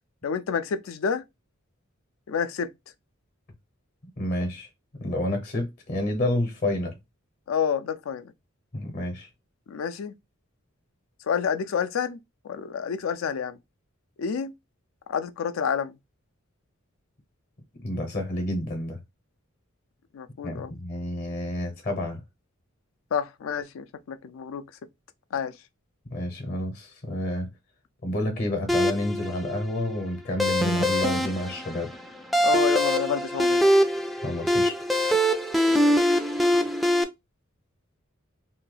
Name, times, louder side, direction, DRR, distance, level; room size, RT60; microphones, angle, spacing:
voice 1, 0.2-1.2 2.3-2.7 7.5-8.3 9.7-10.1 11.2-12.2 12.4-13.6 14.2-14.5 15.1-15.9 20.1-20.7 23.1-24.6 25.3-25.6 32.4-33.6 35.7-35.9, left 6 dB, 75° left, 0.4 m, -29 dB
voice 2, 4.2-7.0 8.7-9.3 17.8-19.0 20.4-22.2 26.1-27.5 28.0-31.9 34.2-34.8, left 1 dB, 40° left, 0.7 m, -29 dB
sound 1, 28.7-37.0, equal, ahead, 0.3 m, -23 dB
2.7 x 2.2 x 3.1 m
head